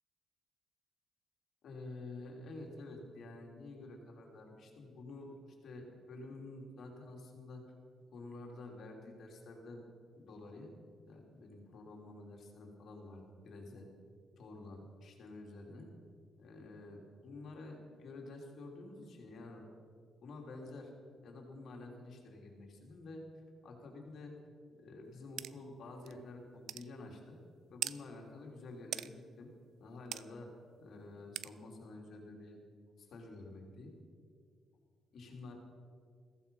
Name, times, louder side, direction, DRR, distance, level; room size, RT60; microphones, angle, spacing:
voice 1, 1.6-5.3 5.6-7.6 8.1-9.8 10.1-10.7 11.1-13.9 14.4-15.9 16.4-19.7 20.2-20.9 21.2-23.2 23.6-24.4 24.7-27.4 27.7-29.5 29.8-30.5 30.8-32.6 33.0-33.9 35.1-35.5, left 2 dB, 60° left, 1 dB, 3.4 m, -49 dB
sound 1, 25.4-25.5 26.1-26.2 26.7-26.9 27.8-28.0 28.9-29.1 30.1-30.2 31.4-31.5, right 11 dB, 75° right, 0.4 m, -39 dB
15.0 x 15.0 x 5.7 m, 2.1 s
cardioid pair, 90°, 0 cm